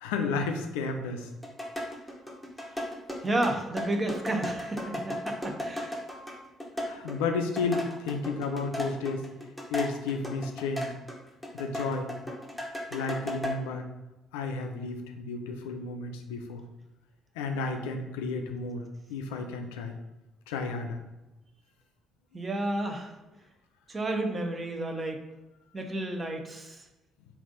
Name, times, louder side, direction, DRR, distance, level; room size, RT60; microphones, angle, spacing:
voice 1, 0.0-1.3 6.8-9.3 9.7-10.9 11.5-12.1 12.9-13.9 14.3-16.6 17.4-18.8 19.1-20.0 20.5-21.0, left 4 dB, 75° left, 5 dB, 0.4 m, -32 dB
sound 1, 1.2-11.2 11.4-13.5, left 1 dB, ahead, 0.9 m, -35 dB
voice 2, 3.2-6.0 22.3-23.1 23.9-25.2 25.7-26.8, right 1 dB, 30° right, 4 dB, 0.7 m, -31 dB
3.4 x 2.5 x 3.8 m, 1.0 s
figure-of-eight pair, 45°, 0 cm